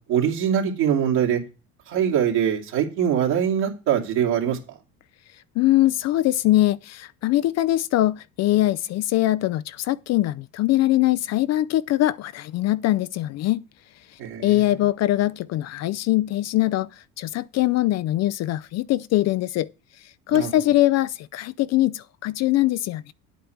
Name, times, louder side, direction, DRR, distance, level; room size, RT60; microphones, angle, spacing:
voice 1, 0.1-1.4 1.9-4.8 14.2-14.6 20.3-20.5, right 9 dB, 60° right, 2.7 m, -23 dB
voice 2, 5.6-13.6 14.4-19.7 20.0-23.1, left 15 dB, 40° left, 0.5 m, -22 dB
10.0 x 8.2 x 4.5 m
hypercardioid pair, 65°, 43 cm